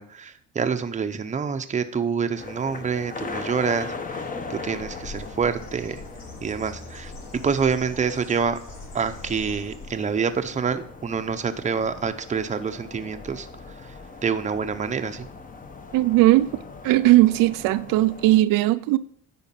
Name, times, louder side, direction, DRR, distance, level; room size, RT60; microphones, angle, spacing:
voice 1, 0.0-6.0 6.4-7.1 7.4-8.6 8.9-13.5 13.9-14.0 14.2-15.3, right 6 dB, 25° right, 0.7 m, -27 dB
sound 1, 2.4-18.4, left 4 dB, 25° left, 1.0 m, -40 dB
Bird, 4.6-10.2, left 2 dB, 80° left, 3.9 m, -42 dB
voice 2, 15.9-16.5 16.8-19.0, right 17 dB, 90° right, 0.5 m, -18 dB
9.8 x 5.1 x 7.4 m
cardioid pair, 130°, 32 cm